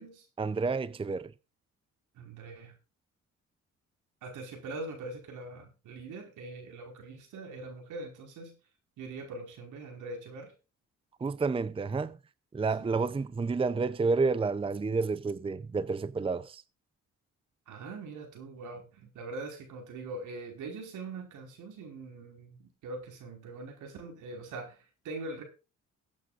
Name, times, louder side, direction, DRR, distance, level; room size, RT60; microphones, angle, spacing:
voice 1, 0.4-1.3 11.2-12.2 12.5-16.6, right 4 dB, 20° right, 0.6 m, -30 dB
voice 2, 2.1-2.7 4.2-8.6 9.0-10.5 12.8-12.9 17.7-25.4, right 3 dB, 85° right, 5.0 m, -42 dB
22.0 x 8.8 x 2.5 m
cardioid pair, 90°, 30 cm